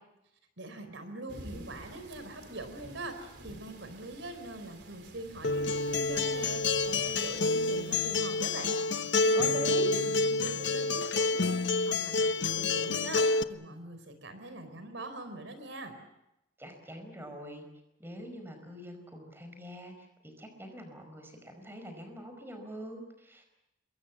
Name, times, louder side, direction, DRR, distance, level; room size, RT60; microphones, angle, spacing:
voice 1, 0.6-8.8 9.2-16.0, right 2 dB, 85° right, 9 dB, 4.5 m, -43 dB
sound 1, 1.3-8.2, right 1 dB, 60° right, 4.1 m, -50 dB
Acoustic guitar, 5.4-13.4, left 3 dB, 75° left, 0.9 m, -28 dB
voice 2, 9.3-9.9 16.6-17.6 18.0-23.6, equal, 10° right, 6 dB, 5.0 m, -43 dB
27.5 x 23.0 x 7.2 m, 0.86 s
head